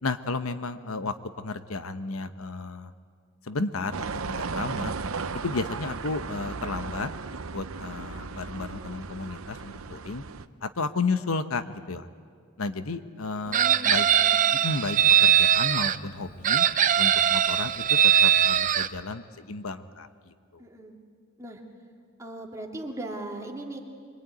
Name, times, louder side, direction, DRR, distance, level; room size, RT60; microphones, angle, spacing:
voice 1, 0.0-2.9 3.5-4.9 5.4-7.1 7.5-10.2 10.6-12.1 12.6-13.6 13.8-14.1 14.6-16.6 17.0-17.8 18.2-20.1 20.5-20.6, left 3 dB, 80° left, 10 dB, 1.0 m, -32 dB
sound 1, 3.9-10.5, right 4 dB, 75° right, 0.8 m, -35 dB
voice 2, 13.5-14.4 20.6-21.0 21.4-21.6 22.2-23.8, right 1 dB, 15° right, 0 dB, 2.6 m, -38 dB
Chicken rooster, 13.5-16.0 16.4-18.9, right 9 dB, 35° right, 0.6 m, -21 dB
24.5 x 23.5 x 9.3 m, 2.1 s
head